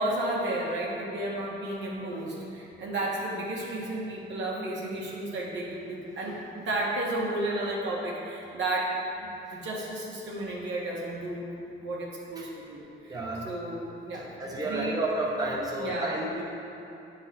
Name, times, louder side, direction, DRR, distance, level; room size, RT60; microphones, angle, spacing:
voice 1, 0.0-11.5 11.8-13.2 13.4-15.0 15.8-16.2, right 1 dB, 65° right, -4 dB, 1.5 m, -33 dB
voice 2, 13.1-13.5 14.4-16.4, right 2 dB, 20° right, -3 dB, 1.0 m, -31 dB
8.8 x 4.0 x 4.2 m, 2.9 s
cardioid pair, 90°, 20 cm